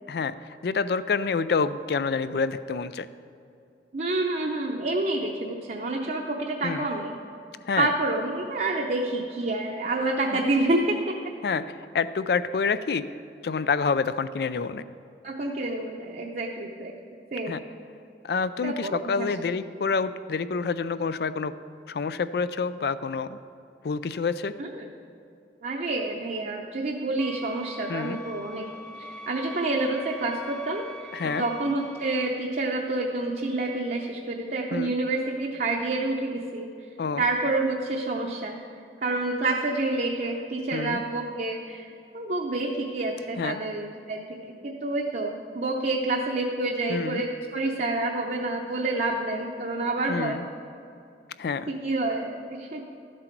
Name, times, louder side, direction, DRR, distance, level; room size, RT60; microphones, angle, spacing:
voice 1, 0.1-3.1 6.6-6.9 7.7-7.9 10.3-10.4 11.4-13.0 13.4-14.8 17.5-17.6 18.2-21.5 21.9-23.4 23.8-24.5 27.9-28.2 31.1-31.4 34.7-34.9 37.0-37.2 40.7-41.0 43.4-43.6 46.9-47.2 50.1-50.5 51.4-51.7, left 5 dB, 60° left, 14 dB, 0.4 m, -28 dB
voice 2, 3.9-7.1 7.8-11.0 15.2-16.9 17.3-17.6 18.6-19.3 24.6-24.7 25.6-28.6 29.3-36.7 37.2-38.6 39.0-50.4 51.7-52.8, right 2 dB, 50° right, -1 dB, 0.7 m, -28 dB
sound 1, 27.2-32.3, right 1 dB, 5° left, 0.6 m, -42 dB
12.5 x 7.7 x 4.5 m, 2.6 s
head